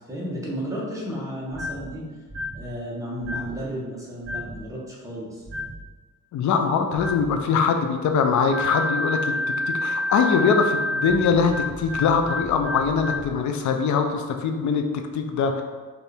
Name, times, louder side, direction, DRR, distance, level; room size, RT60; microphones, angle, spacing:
voice 1, 0.1-2.1 2.5-5.4, equal, 10° right, -5 dB, 1.0 m, -33 dB
sound 1, 1.5-1.9 2.3-2.6 3.2-3.6 4.2-4.6 5.4-5.8 6.9-7.3 8.5-13.3, left 1 dB, 45° right, 1.1 m, -29 dB
voice 2, 6.3-9.3 9.7-14.9 15.1-15.6, left 5 dB, 65° left, 5 dB, 0.4 m, -22 dB
4.4 x 2.6 x 3.3 m, 1.4 s
wide cardioid pair, 140°, 33 cm